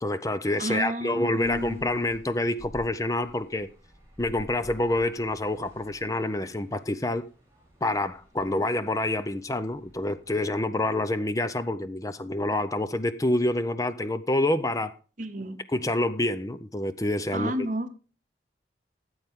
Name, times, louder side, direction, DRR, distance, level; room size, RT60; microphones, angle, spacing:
voice 1, 0.0-3.7 4.2-7.2 7.8-14.9 15.7-17.5, left 1 dB, 20° left, 0.6 m, -27 dB
voice 2, 0.6-2.1 15.2-15.6 17.3-17.9, right 1 dB, 45° right, 1.0 m, -31 dB
sound 1, 1.4-10.3, equal, 15° right, 5.9 m, -51 dB
13.5 x 8.0 x 3.6 m
head